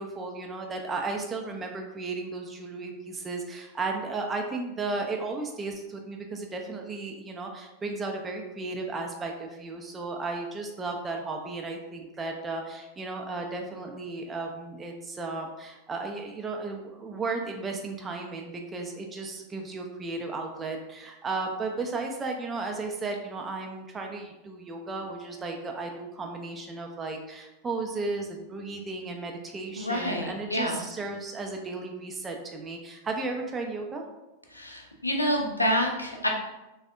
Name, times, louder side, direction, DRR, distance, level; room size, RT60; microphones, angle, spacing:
voice 1, 0.0-34.1, right 3 dB, 20° right, 2 dB, 0.3 m, -34 dB
voice 2, 29.8-30.8 34.5-36.3, equal, 85° left, 1 dB, 0.4 m, -28 dB
3.3 x 2.0 x 2.4 m, 1.0 s
figure-of-eight pair, 90°, 0 cm